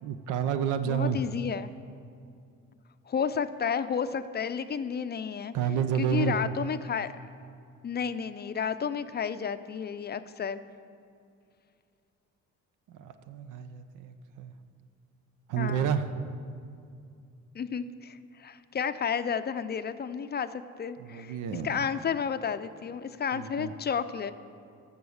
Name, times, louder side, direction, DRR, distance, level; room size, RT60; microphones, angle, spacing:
voice 1, 0.0-1.2 5.5-6.4 12.9-14.5 15.5-16.1 21.0-21.8 23.3-23.7, right 8 dB, 85° right, 10 dB, 0.7 m, -30 dB
voice 2, 0.9-1.7 3.1-5.5 6.0-7.1 7.8-10.6 15.6-15.9 17.5-21.4 21.6-24.3, left 7 dB, 35° left, 12 dB, 0.4 m, -32 dB
14.0 x 5.5 x 6.4 m, 2.4 s
cardioid pair, 90°, 30 cm